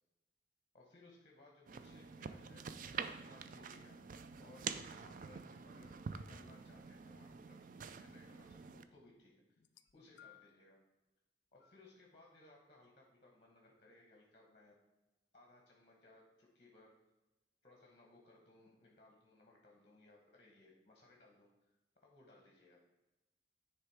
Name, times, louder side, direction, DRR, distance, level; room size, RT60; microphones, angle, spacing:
voice 1, 0.7-2.6 3.0-4.0 4.4-9.4 9.9-10.8 11.5-14.8 15.3-16.9 17.6-21.7 22.0-22.8, left 2 dB, 35° left, 0 dB, 1.1 m, -64 dB
sound 1, 1.7-8.8, right 6 dB, 45° right, 0.4 m, -47 dB
sound 2, 9.6-10.7 11.6-11.8 12.8-12.9, left 11 dB, 70° left, 0.4 m, -63 dB
9.9 x 3.3 x 4.7 m, 1.1 s
head